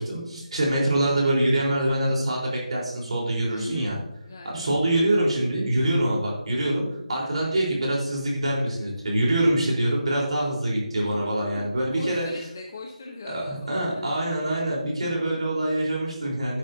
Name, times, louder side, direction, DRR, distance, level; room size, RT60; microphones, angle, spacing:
voice 1, 0.0-4.0 4.4-6.8 7.1-12.2 13.2-16.6, right 1 dB, 50° right, -3 dB, 4.1 m, -25 dB
voice 2, 3.5-3.9 4.3-4.7 11.0-14.0, left 2 dB, 25° left, 1 dB, 0.8 m, -39 dB
10.5 x 10.5 x 2.8 m, 0.85 s
figure-of-eight pair, 175°, 4 cm